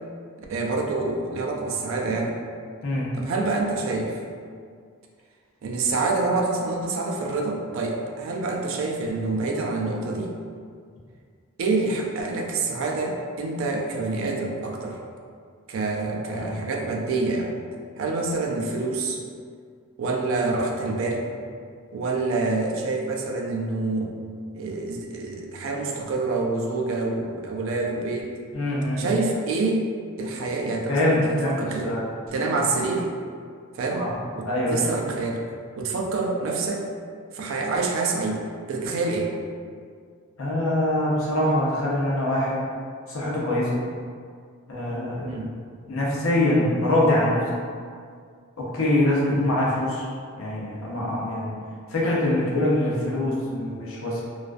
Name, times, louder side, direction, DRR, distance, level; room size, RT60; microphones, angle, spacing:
voice 1, 0.5-2.4 3.1-4.2 5.6-10.3 11.6-15.0 15.7-17.6 18.0-19.2 20.0-21.2 21.9-24.2 24.5-28.3 29.0-29.9 30.2-31.9 32.3-33.1 33.7-34.0 34.4-35.4 35.8-36.8 37.3-39.3 45.2-45.6 49.3-49.5, right 3 dB, 65° right, 0 dB, 0.3 m, -27 dB
voice 2, 16.2-16.6 28.5-29.0 30.9-31.6 31.8-32.0 33.9-34.1 34.4-34.8 40.4-42.6 43.1-43.8 44.7-45.4 45.9-47.5 48.6-50.1 50.4-51.5 51.9-54.2, left 1 dB, 70° left, -5 dB, 0.6 m, -24 dB
2.3 x 2.2 x 2.4 m, 2.1 s
head